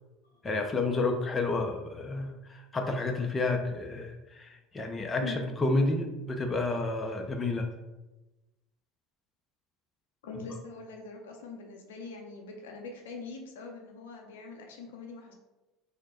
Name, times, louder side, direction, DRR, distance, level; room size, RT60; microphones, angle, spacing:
voice 1, 0.4-7.7, left 2 dB, 25° left, 3 dB, 0.5 m, -30 dB
voice 2, 10.2-15.3, left 4 dB, 80° left, 1 dB, 0.6 m, -43 dB
3.1 x 2.1 x 4.1 m, 1.0 s
hypercardioid pair, 75°, 0 cm